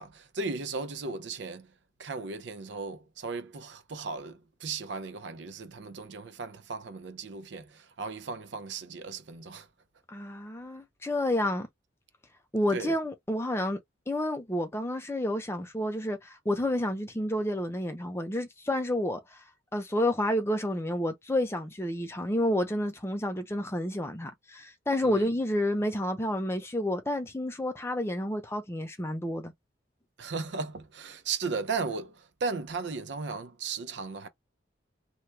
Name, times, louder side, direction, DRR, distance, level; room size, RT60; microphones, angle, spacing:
voice 1, 0.0-1.7 2.0-9.7 12.7-13.0 25.0-25.3 30.2-34.3, right 4 dB, 70° right, 0.6 m, -36 dB
voice 2, 10.1-11.7 12.5-13.8 14.1-19.4 19.7-29.5, left 1 dB, 15° left, 0.6 m, -30 dB
2.9 x 2.1 x 3.2 m
head